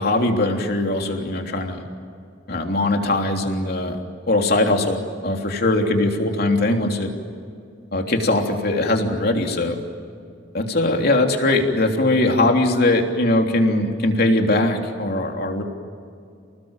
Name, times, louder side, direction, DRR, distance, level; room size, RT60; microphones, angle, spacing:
voice 1, 0.0-1.8 2.5-4.0 4.3-7.1 7.9-9.8 10.5-15.6, left 2 dB, 55° left, 3 dB, 3.3 m, -20 dB
29.5 x 20.0 x 9.0 m, 2.3 s
head